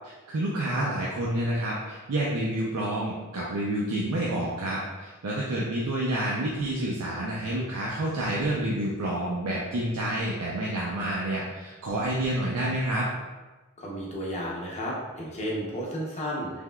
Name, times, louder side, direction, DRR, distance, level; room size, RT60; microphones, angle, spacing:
voice 1, 0.3-13.1, right 1 dB, 85° right, -4 dB, 0.5 m, -29 dB
voice 2, 13.8-16.5, equal, 30° left, -4 dB, 0.7 m, -32 dB
3.4 x 2.8 x 2.2 m, 1.2 s
head